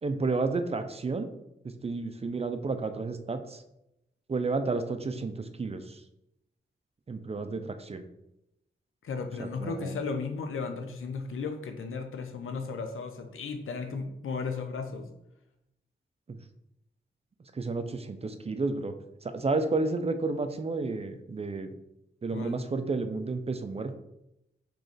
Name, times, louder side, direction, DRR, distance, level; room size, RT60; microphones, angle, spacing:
voice 1, 0.0-1.3 1.8-3.6 4.3-6.0 7.1-8.0 9.4-9.9 16.3-16.4 17.5-18.9 19.2-21.7 22.2-24.0, right 3 dB, 30° right, 8 dB, 0.4 m, -31 dB
voice 2, 9.0-15.1 22.3-22.6, left 4 dB, 80° left, 5 dB, 0.5 m, -35 dB
3.1 x 2.4 x 3.7 m, 0.85 s
cardioid pair, 55°, 21 cm